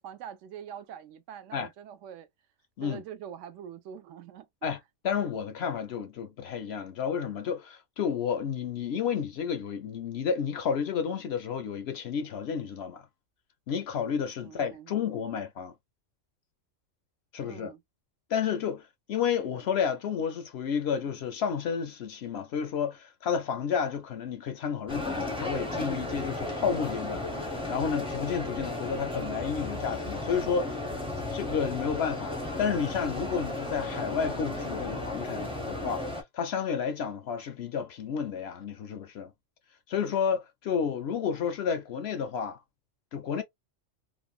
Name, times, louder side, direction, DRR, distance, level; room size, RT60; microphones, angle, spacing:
voice 1, 0.0-2.3 2.8-4.7 14.4-15.2 17.4-17.8 19.5-19.7, right 8 dB, 75° right, 0.9 m, -44 dB
voice 2, 5.0-13.1 13.7-15.7 17.3-17.7 18.3-18.8 19.1-27.3 27.7-30.8 31.3-36.1 36.3-39.3 39.9-42.6 43.1-43.4, left 7 dB, 65° left, 0.7 m, -31 dB
sound 1, 24.9-36.2, left 2 dB, 5° right, 0.5 m, -34 dB
3.2 x 2.1 x 2.4 m
omnidirectional pair, 1.3 m